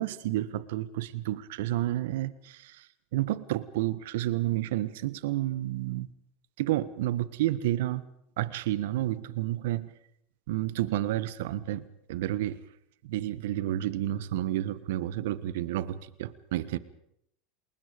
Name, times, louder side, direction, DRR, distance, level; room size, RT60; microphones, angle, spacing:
voice 1, 0.0-6.1 6.6-8.0 8.4-9.9 10.5-12.6 13.0-16.8, right 14 dB, 75° right, 16 dB, 1.4 m, -30 dB
29.0 x 20.5 x 5.2 m, 0.73 s
hypercardioid pair, 100°, 0 cm